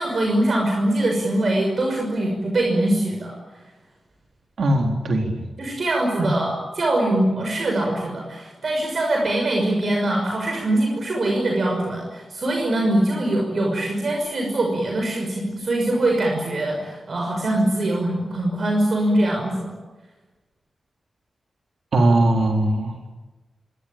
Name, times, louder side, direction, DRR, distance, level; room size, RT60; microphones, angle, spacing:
voice 1, 0.0-3.4 5.6-19.7, right 1 dB, 50° right, 1 dB, 6.0 m, -22 dB
voice 2, 4.6-5.4 6.2-6.3 21.9-23.1, right 1 dB, 70° right, 2 dB, 3.8 m, -20 dB
28.5 x 24.0 x 8.7 m, 1.2 s
wide cardioid pair, 175°, 0 cm